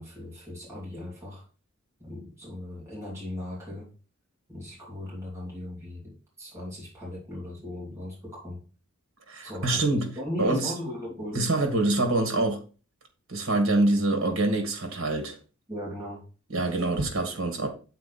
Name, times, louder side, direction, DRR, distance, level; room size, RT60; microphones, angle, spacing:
voice 1, 0.0-1.4 2.0-3.9 4.5-8.6 9.4-9.8 10.2-11.5 15.7-16.2, left 1 dB, 15° right, 2.9 m, -38 dB
voice 2, 9.3-10.7 11.3-12.6 13.3-15.4 16.5-17.7, right 2 dB, 60° right, 1.9 m, -25 dB
7.2 x 4.5 x 4.2 m
head